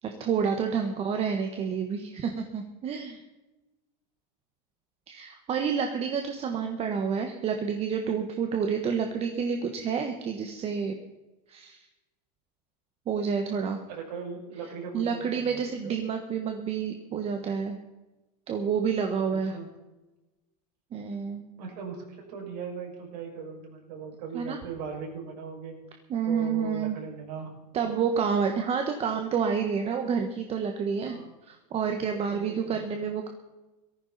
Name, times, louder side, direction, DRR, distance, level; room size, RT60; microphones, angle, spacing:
voice 1, 0.0-3.2 5.1-11.0 11.5-11.8 13.1-13.8 14.9-17.8 18.5-19.5 20.9-21.4 24.3-24.6 26.1-27.0 27.7-31.2 31.4-33.3, right 6 dB, 30° right, 4 dB, 1.4 m, -29 dB
voice 2, 13.9-15.9 19.5-19.7 21.6-25.8 26.2-28.0 31.1-31.3 32.3-32.8, right 5 dB, 75° right, 0 dB, 6.2 m, -39 dB
17.5 x 14.5 x 4.2 m, 1.1 s
supercardioid pair, 140°, 21 cm